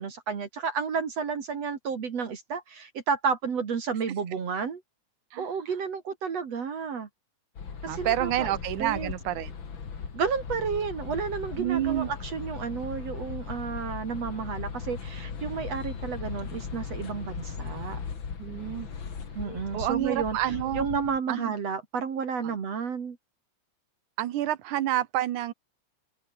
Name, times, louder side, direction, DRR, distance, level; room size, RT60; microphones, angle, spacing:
voice 1, 0.0-4.8 5.4-7.1 7.8-8.5 8.8-9.1 10.1-18.0 19.4-20.4 20.8-23.2, right 6 dB, 60° right, 3.5 m, -31 dB
sound 1, 7.6-21.2, left 6 dB, 40° left, 3.0 m, -38 dB
voice 2, 7.9-9.5 11.6-12.1 18.4-18.9 19.7-20.9 21.3-21.5 22.4-22.5 24.2-25.5, right 13 dB, 90° right, 2.6 m, -28 dB
open air
omnidirectional pair, 3.4 m